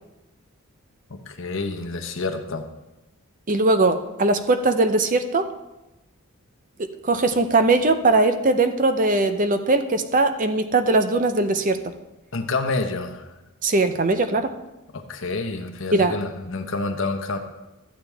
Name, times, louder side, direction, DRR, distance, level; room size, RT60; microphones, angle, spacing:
voice 1, 1.1-2.6 12.3-13.3 14.9-17.4, left 3 dB, 60° left, 5 dB, 1.0 m, -28 dB
voice 2, 3.5-5.5 6.8-11.8 13.6-14.5 15.9-16.1, right 2 dB, 35° right, 9 dB, 0.6 m, -20 dB
13.0 x 9.0 x 3.4 m, 0.99 s
head